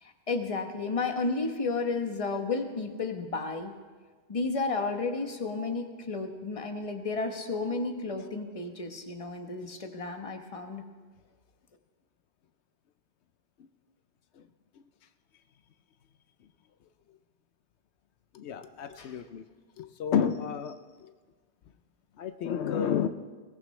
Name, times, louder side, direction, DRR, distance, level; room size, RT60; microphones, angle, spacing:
voice 1, 0.0-3.7 4.3-10.8 19.0-19.2, left 3 dB, 30° left, 5 dB, 1.1 m, -32 dB
voice 2, 18.4-19.4 20.0-20.7 22.2-23.1, left 7 dB, 85° left, 9 dB, 0.9 m, -29 dB
21.5 x 18.0 x 3.2 m, 1.4 s
omnidirectional pair, 1.1 m